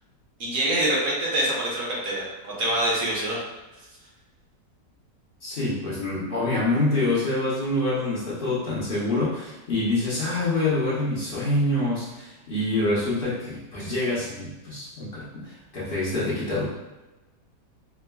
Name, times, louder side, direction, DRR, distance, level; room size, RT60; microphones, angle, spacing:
voice 1, 0.4-3.4, right 1 dB, 60° right, -4 dB, 1.2 m, -25 dB
voice 2, 5.4-16.6, left 2 dB, 45° left, -8 dB, 0.7 m, -26 dB
4.6 x 2.1 x 2.2 m, 1.1 s
omnidirectional pair, 1.8 m